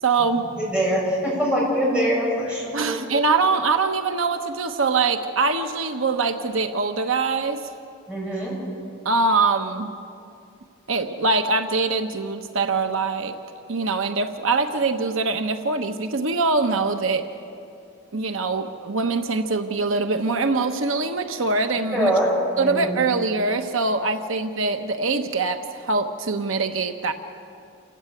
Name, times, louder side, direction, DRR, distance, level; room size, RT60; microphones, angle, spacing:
voice 1, 0.0-0.4 2.7-7.7 9.0-10.0 10.9-13.4 13.7-17.3 18.1-22.2 22.6-27.1, right 3 dB, 85° right, 7 dB, 1.1 m, -23 dB
voice 2, 0.6-3.0 8.1-8.5 21.9-22.3 22.6-23.0, equal, 5° right, -5 dB, 7.3 m, -23 dB
28.5 x 14.0 x 9.1 m, 2.5 s
head